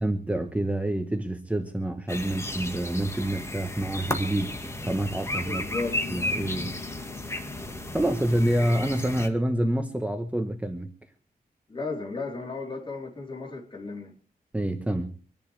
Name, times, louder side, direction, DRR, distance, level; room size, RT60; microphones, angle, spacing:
voice 1, 0.0-4.5 4.8-5.6 6.1-6.8 7.9-10.9 14.5-15.2, right 1 dB, 10° right, 1.1 m, -27 dB
sound 1, 2.1-9.3, left 1 dB, 15° left, 1.6 m, -34 dB
voice 2, 5.4-6.0 11.7-14.2, left 3 dB, 30° left, 3.8 m, -34 dB
sound 2, 5.7-10.6, left 8 dB, 85° left, 2.9 m, -45 dB
25.5 x 10.5 x 3.3 m
wide cardioid pair, 120°, 16 cm